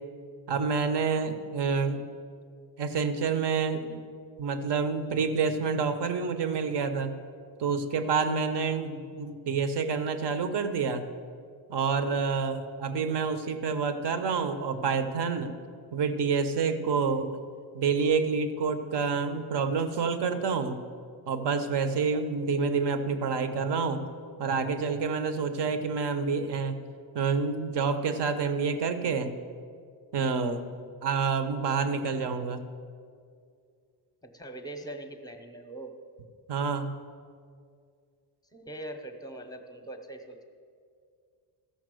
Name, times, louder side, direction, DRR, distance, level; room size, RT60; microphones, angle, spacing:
voice 1, 0.5-2.0 2.8-4.0 4.4-7.1 7.6-11.1 11.7-15.5 15.9-17.4 17.7-20.8 21.3-24.0 24.4-26.8 27.1-29.3 30.1-30.6 31.0-32.6 36.5-36.9, right 5 dB, 55° right, 10 dB, 0.9 m, -28 dB
voice 2, 34.2-35.9 38.5-40.4, right 1 dB, 10° left, 5 dB, 0.8 m, -42 dB
14.5 x 5.8 x 7.6 m, 2.2 s
cardioid pair, 165°, 48 cm